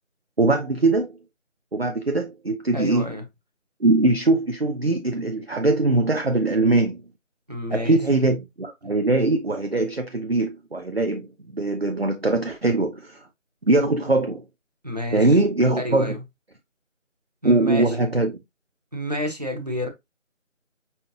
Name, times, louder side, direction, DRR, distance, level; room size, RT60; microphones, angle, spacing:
voice 1, 0.4-1.2 1.7-3.1 3.8-7.0 7.7-11.3 11.5-13.3 13.7-14.4 15.1-16.2 17.4-18.4, right 2 dB, 50° right, 0.6 m, -21 dB
voice 2, 2.7-3.2 7.5-8.0 14.8-15.3 15.8-16.2 17.4-17.9 18.9-19.9, left 1 dB, 30° right, 1.1 m, -29 dB
5.7 x 3.4 x 2.7 m
figure-of-eight pair, 170°, 39 cm